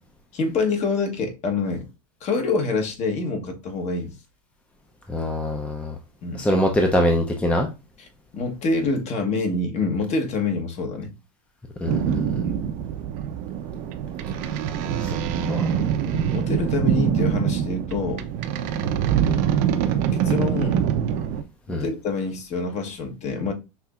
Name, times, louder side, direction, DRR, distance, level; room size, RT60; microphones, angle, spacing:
voice 1, 0.3-1.9 2.2-4.2 6.2-6.4 8.0-8.1 8.3-11.1 12.4-12.6 16.1-18.3 20.1-20.9 21.7-23.5, left 3 dB, 40° left, 1.1 m, -26 dB
voice 2, 5.1-6.0 6.4-7.7 11.8-12.4 15.0-15.2 15.5-15.7 21.7-21.9, left 1 dB, 5° left, 0.6 m, -23 dB
sound 1, 11.9-21.4, right 8 dB, 50° right, 0.6 m, -24 dB
5.8 x 2.8 x 2.4 m
hypercardioid pair, 105°, 18 cm